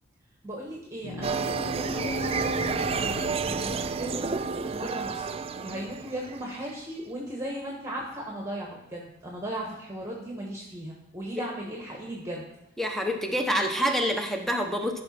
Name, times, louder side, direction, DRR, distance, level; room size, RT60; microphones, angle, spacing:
voice 1, 0.4-12.5, right 1 dB, 15° right, -1 dB, 1.3 m, -37 dB
sound 1, 1.0-6.7, left 1 dB, 75° left, 2.1 m, -38 dB
sound 2, 1.2-6.8, right 5 dB, 30° right, 0.4 m, -31 dB
voice 2, 12.8-15.0, equal, ahead, 3 dB, 1.0 m, -27 dB
13.5 x 5.6 x 4.3 m, 0.86 s
head